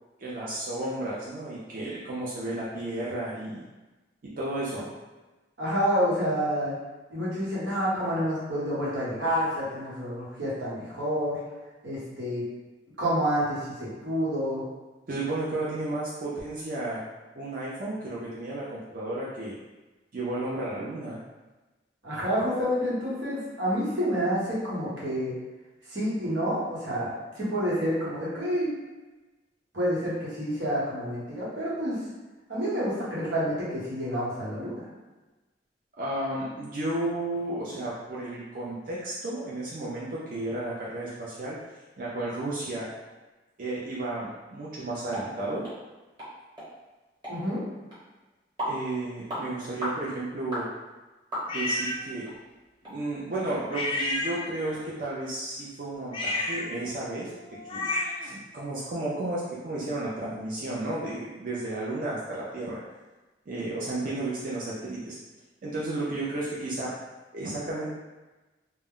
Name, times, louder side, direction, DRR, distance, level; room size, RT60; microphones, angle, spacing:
voice 1, 0.2-3.6 4.2-4.9 15.1-17.0 17.4-19.6 20.1-21.2 36.0-41.6 42.0-42.9 43.6-45.7 48.6-50.7 51.5-52.3 52.9-57.3 57.7-57.9 58.2-62.8 63.5-65.2 65.6-66.9 67.3-67.9, right 2 dB, 50° right, -7 dB, 0.4 m, -33 dB
voice 2, 5.6-6.7 7.1-11.4 11.8-12.4 13.0-14.6 22.0-25.3 25.9-28.7 29.7-32.0 32.5-34.8 47.3-47.6, equal, 90° right, -8 dB, 1.0 m, -28 dB
sound 1, 45.1-45.3 45.6-45.8 46.2-46.3 46.6-46.7 47.2-47.4 47.9-48.0 48.6-48.8 49.3-49.4 49.8-50.0 50.5-50.7 51.3-51.8 52.2-52.3 52.8-52.9 53.4-53.5, equal, 25° right, 1.0 m, -34 dB
sound 2, 51.5-52.0 53.7-54.8 56.1-58.3, left 2 dB, 30° left, 0.3 m, -31 dB
2.2 x 2.0 x 3.6 m, 1.2 s
head